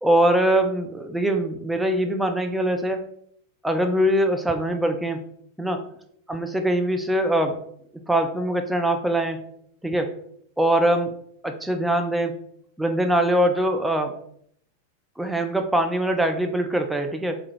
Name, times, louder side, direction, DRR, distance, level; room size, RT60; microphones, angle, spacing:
voice 1, 0.0-3.0 3.6-5.2 5.6-5.8 6.3-7.6 8.1-9.4 9.8-10.1 10.6-11.1 11.4-12.4 12.8-14.1 15.2-17.4, right 1 dB, 5° right, 5 dB, 0.5 m, -22 dB
3.5 x 3.3 x 4.2 m, 0.68 s
figure-of-eight pair, 90°, 0 cm